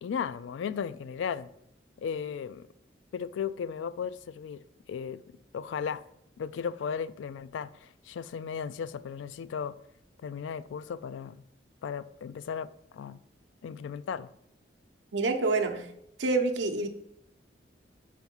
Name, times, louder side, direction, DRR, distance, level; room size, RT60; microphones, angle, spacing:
voice 1, 0.0-1.5 2.0-2.7 3.1-4.6 4.9-6.0 6.4-9.8 10.2-11.4 11.8-13.2 13.6-14.3, left 7 dB, 90° left, 0.3 m, -36 dB
voice 2, 15.1-15.9 16.2-16.9, right 3 dB, 80° right, 0.8 m, -27 dB
4.6 x 4.5 x 5.5 m
head